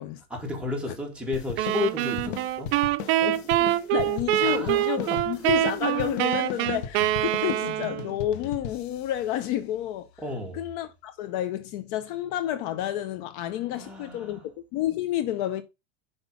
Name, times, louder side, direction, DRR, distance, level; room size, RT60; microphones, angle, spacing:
voice 1, 0.3-2.8 4.4-5.3 10.2-10.7 13.7-14.4, left 2 dB, 5° right, 2.4 m, -33 dB
sound 1, 1.3-10.2, left 8 dB, 80° left, 1.2 m, -39 dB
sound 2, 1.6-8.2, right 15 dB, 40° right, 0.7 m, -25 dB
voice 2, 3.2-10.1 10.5-15.6, left 12 dB, 50° left, 0.8 m, -30 dB
6.2 x 5.2 x 5.5 m
supercardioid pair, 150°, 31 cm